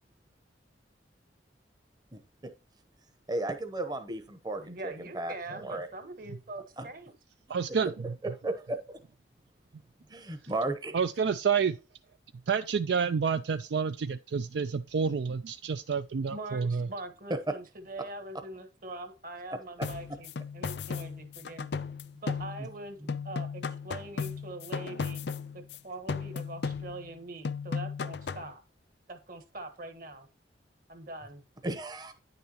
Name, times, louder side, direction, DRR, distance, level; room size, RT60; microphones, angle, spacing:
voice 1, 3.3-5.9 6.8-6.9 8.4-9.0 10.1-10.9 17.5-17.6 19.5-19.9 23.0-23.1 31.6-32.1, right 2 dB, 25° right, 0.8 m, -35 dB
voice 2, 4.6-7.1 16.3-21.7 22.2-25.2 25.5-28.6 29.1-30.3 30.9-31.4, right 2 dB, 50° right, 1.4 m, -43 dB
voice 3, 7.5-7.9 10.9-11.8 12.5-16.9, right 6 dB, 70° right, 0.4 m, -29 dB
sound 1, 19.8-22.8 23.1-25.8 26.1-27.2 27.4-28.5, left 5 dB, 65° left, 0.5 m, -36 dB
9.6 x 6.7 x 2.9 m
head